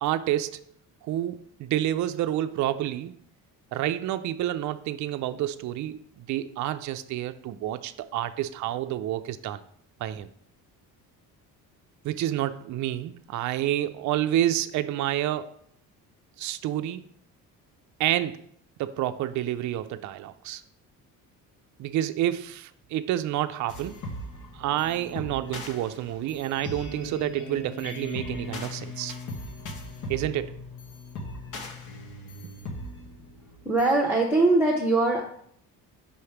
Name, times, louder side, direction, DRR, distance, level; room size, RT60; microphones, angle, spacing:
voice 1, 0.0-0.6 1.0-3.1 3.7-9.6 10.0-10.3 12.0-15.5 16.4-17.0 18.0-18.4 18.8-20.6 21.8-24.0 24.5-29.1 30.1-30.6, right 12 dB, 55° right, 9 dB, 0.4 m, -29 dB
sound 1, 23.7-33.9, left 1 dB, 60° left, 1.1 m, -39 dB
voice 2, 33.6-35.2, right 2 dB, 5° right, -2 dB, 0.9 m, -21 dB
5.5 x 3.3 x 5.7 m, 0.65 s
cardioid pair, 110°, 35 cm